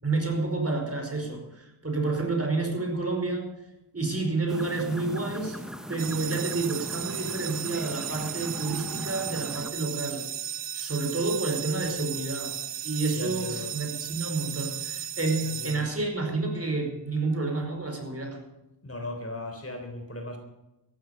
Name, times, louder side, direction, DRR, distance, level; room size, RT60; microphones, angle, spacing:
voice 1, 0.0-3.5 3.9-5.6 5.9-10.3 10.7-18.4, right 3 dB, 30° right, 2 dB, 5.1 m, -29 dB
sound 1, 4.5-9.7, equal, ahead, 0.9 m, -40 dB
sound 2, 6.0-16.4, right 10 dB, 65° right, 0.6 m, -35 dB
voice 2, 13.1-13.7 15.4-15.9 18.8-20.4, left 2 dB, 30° left, 4 dB, 3.7 m, -37 dB
14.5 x 12.0 x 7.2 m, 0.94 s
wide cardioid pair, 80°, 44 cm